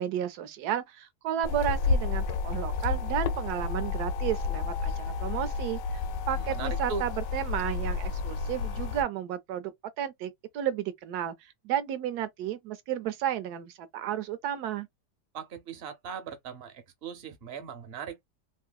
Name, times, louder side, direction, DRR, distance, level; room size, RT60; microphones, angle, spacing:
voice 1, 0.0-6.0 6.3-9.7 10.0-14.9, right 10 dB, 70° right, 1.1 m, -32 dB
sound 1, 1.4-9.0, left 4 dB, 85° left, 1.2 m, -31 dB
voice 2, 6.3-7.0 15.3-18.2, right 6 dB, 50° right, 0.8 m, -39 dB
3.1 x 2.7 x 2.2 m
omnidirectional pair, 1.8 m